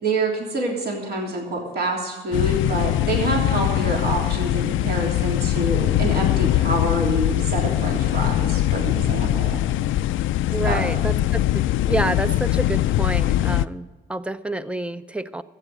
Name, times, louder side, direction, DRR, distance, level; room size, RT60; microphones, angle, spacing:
voice 1, 0.0-9.6 10.6-10.9, right 2 dB, 55° right, -1 dB, 3.3 m, -26 dB
sound 1, 2.3-13.7, left 13 dB, 80° left, 0.4 m, -22 dB
voice 2, 10.5-11.4 11.9-15.4, right 2 dB, 5° right, 13 dB, 0.6 m, -28 dB
13.0 x 8.9 x 7.8 m, 1.3 s
cardioid pair, 90°, 20 cm